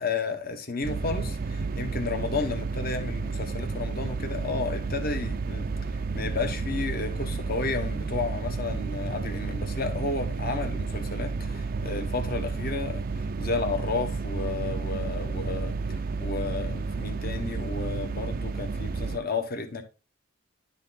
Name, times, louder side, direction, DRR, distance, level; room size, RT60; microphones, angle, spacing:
voice 1, 0.0-19.8, left 3 dB, 45° left, 1.1 m, -32 dB
sound 1, 0.8-19.2, right 4 dB, 45° right, 0.4 m, -31 dB
10.5 x 4.1 x 4.0 m
head